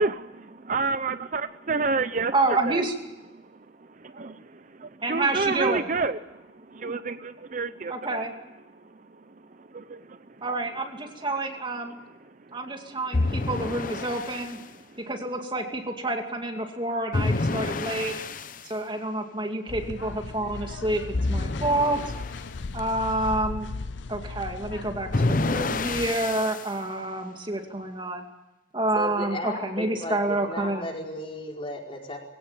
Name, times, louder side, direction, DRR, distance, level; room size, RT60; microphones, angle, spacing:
voice 1, 0.0-2.9 3.3-8.2 8.7-10.4 12.3-12.9 14.9-15.0, right 3 dB, 45° right, 11 dB, 0.7 m, -31 dB
voice 2, 2.3-2.9 5.0-5.8 7.9-8.3 10.4-12.0 12.5-14.6 15.1-18.1 18.6-21.0 21.3-22.0 22.7-23.7 24.1-28.2 28.7-30.9, right 2 dB, 25° right, 4 dB, 2.4 m, -28 dB
sound 1, 13.1-14.6 17.1-18.6 21.1-22.5 25.1-26.7, left 2 dB, 45° left, 0.8 m, -28 dB
sound 2, 19.7-26.1, left 3 dB, 80° left, 0.7 m, -37 dB
voice 3, 28.9-32.2, left 1 dB, 30° left, 0 dB, 4.6 m, -35 dB
22.5 x 17.5 x 8.8 m, 1.0 s
head